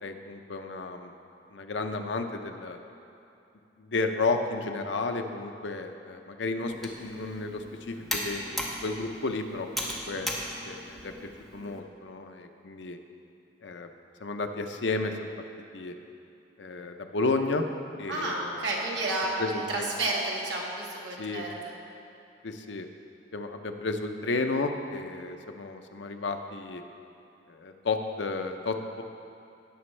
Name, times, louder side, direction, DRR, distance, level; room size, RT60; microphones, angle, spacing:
voice 1, 0.0-1.1 1.5-2.8 3.8-10.4 10.7-11.1 11.5-13.0 13.6-13.9 14.2-15.3 15.7-15.9 16.6-17.6 18.0-18.5 19.4-19.9 21.2-21.4 22.4-22.9 23.3-26.8 27.5-29.0, left 3 dB, 80° left, 5 dB, 0.7 m, -32 dB
Computer keyboard, 6.6-11.8, left 1 dB, ahead, 1.0 m, -37 dB
voice 2, 18.1-21.7, right 2 dB, 75° right, -3 dB, 1.7 m, -31 dB
18.0 x 6.1 x 3.3 m, 2.6 s
head